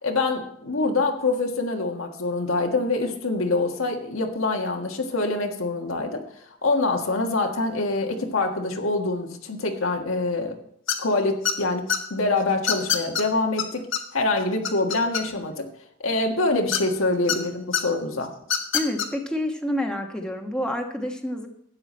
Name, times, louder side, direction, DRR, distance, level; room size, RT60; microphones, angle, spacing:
voice 1, 0.0-6.2 6.6-10.6 11.0-13.9 14.1-15.7 16.0-18.3, left 3 dB, 85° left, 3 dB, 1.6 m, -25 dB
sound 1, 10.9-11.1 11.4-12.0 12.7-13.2 13.6-13.7 13.9-14.0 14.4-15.5 16.7-17.4 17.7-17.8 18.4-19.1, left 8 dB, 65° left, 1.3 m, -24 dB
voice 2, 18.7-21.5, left 1 dB, 5° left, 2 dB, 1.2 m, -28 dB
12.5 x 9.0 x 4.4 m, 0.70 s
head